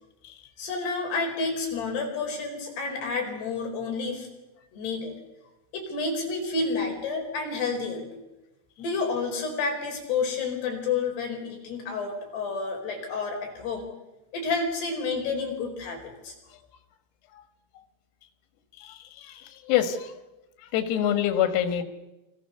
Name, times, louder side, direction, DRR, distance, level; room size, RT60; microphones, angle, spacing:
voice 1, 0.6-4.3 4.7-5.1 5.7-8.2 8.8-13.9 14.3-16.3, left 4 dB, 55° left, 3 dB, 6.7 m, -30 dB
voice 2, 18.8-20.1 20.6-21.8, left 10 dB, 90° left, 7 dB, 4.7 m, -26 dB
29.0 x 26.0 x 6.9 m, 1.0 s
omnidirectional pair, 6.0 m